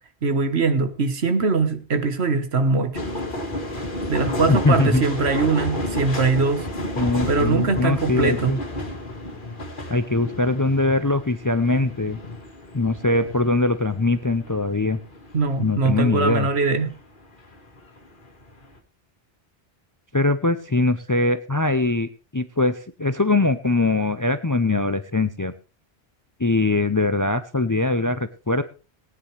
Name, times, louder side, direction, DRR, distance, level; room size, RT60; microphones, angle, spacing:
voice 1, 0.2-3.0 4.1-6.7 7.3-8.6 15.3-16.9, right 4 dB, 75° right, 8 dB, 1.6 m, -22 dB
sound 1, 2.9-17.0 17.3-18.8, left 1 dB, 50° left, 2.0 m, -32 dB
voice 2, 4.5-5.0 7.0-8.6 9.9-12.2 12.7-15.0 15.6-16.5 20.1-25.5 26.4-28.6, left 2 dB, 25° left, 12 dB, 0.4 m, -22 dB
19.0 x 9.7 x 3.3 m, 0.33 s
omnidirectional pair, 1.1 m